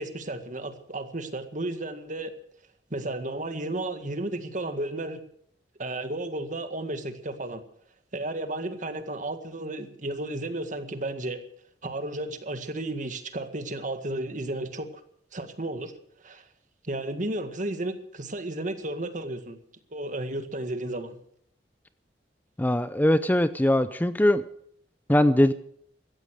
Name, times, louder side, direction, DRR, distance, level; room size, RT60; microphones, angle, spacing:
voice 1, 0.0-2.3 2.9-5.2 5.8-7.6 8.1-11.4 11.8-15.0 15.3-15.9 16.2-16.5 16.8-19.6 19.9-21.2, right 2 dB, 45° right, 8 dB, 1.9 m, -33 dB
voice 2, 22.6-24.4 25.1-25.5, left 1 dB, 10° left, 13 dB, 0.6 m, -21 dB
16.0 x 14.0 x 6.4 m, 0.68 s
head